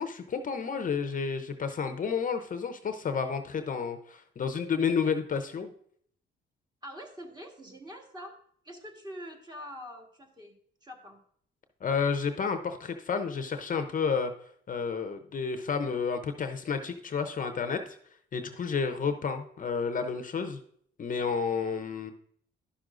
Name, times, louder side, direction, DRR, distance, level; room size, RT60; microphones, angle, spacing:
voice 1, 0.0-5.7 11.8-14.3 14.7-18.0 18.3-20.6 21.0-22.1, left 5 dB, 40° left, 8 dB, 0.7 m, -31 dB
voice 2, 6.8-8.3 8.6-10.5 10.8-11.2, equal, 20° right, 2 dB, 1.5 m, -44 dB
11.0 x 6.1 x 2.5 m, 0.64 s
cardioid pair, 90°, 20 cm